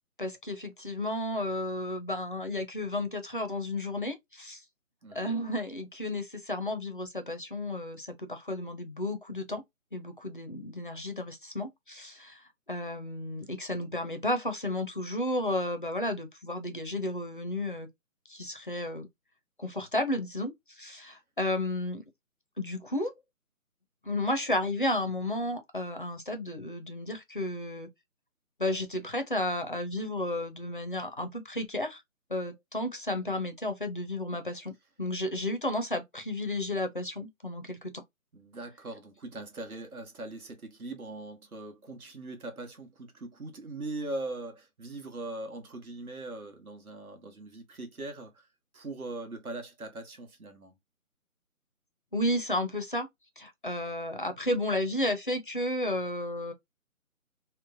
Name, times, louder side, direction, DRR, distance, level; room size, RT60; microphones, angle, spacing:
voice 1, 0.2-4.6 5.1-9.6 9.9-12.4 12.7-17.9 18.3-19.1 19.6-22.0 22.6-23.1 24.0-27.9 28.6-32.0 32.3-34.7 35.0-37.9 52.1-53.1 53.4-56.5, left 1 dB, 40° left, 0.4 m, -32 dB
voice 2, 5.0-5.3 21.0-21.2 38.3-48.5 48.7-50.8, right 2 dB, 80° right, 1.1 m, -41 dB
3.0 x 2.1 x 2.4 m
figure-of-eight pair, 155°, 42 cm